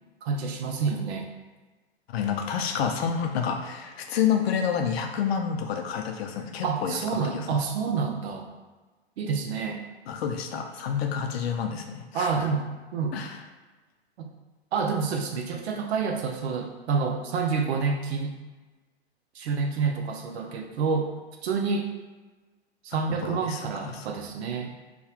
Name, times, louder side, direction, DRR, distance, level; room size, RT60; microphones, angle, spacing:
voice 1, 0.2-1.3 6.6-8.5 9.2-9.8 12.1-12.7 12.9-13.2 14.2-14.3 14.7-18.4 19.3-21.1 21.4-21.9 22.8-24.8, right 5 dB, 70° right, 2 dB, 0.5 m, -28 dB
voice 2, 2.1-7.6 10.1-12.5 13.1-13.4 22.9-24.1, left 7 dB, 65° left, 4 dB, 0.5 m, -29 dB
2.9 x 2.2 x 2.3 m, 1.3 s
hypercardioid pair, 125°, 33 cm